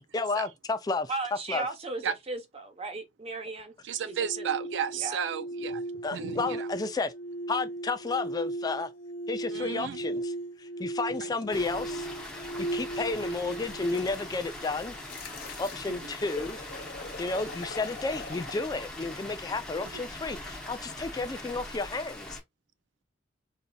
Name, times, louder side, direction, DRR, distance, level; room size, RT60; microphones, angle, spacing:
voice 1, 0.0-1.1 1.5-1.6 6.0-7.1 7.5-8.9 9.3-12.1 12.3-15.0 15.6-16.6 17.2-22.4, left 3 dB, 20° left, 0.3 m, -32 dB
voice 2, 1.1-3.7 4.0-4.5 4.9-5.2, right 3 dB, 35° right, 0.8 m, -36 dB
voice 3, 3.8-5.8 6.1-6.7 9.5-10.0 15.9-16.0 19.9-20.0, right 8 dB, 80° right, 0.4 m, -33 dB
sound 1, 4.0-15.0, right 1 dB, 85° left, 0.7 m, -37 dB
Water, 11.5-22.4, left 1 dB, 5° left, 0.8 m, -42 dB
sound 2, 13.6-18.6, left 4 dB, 55° left, 0.9 m, -44 dB
4.1 x 2.7 x 2.2 m
head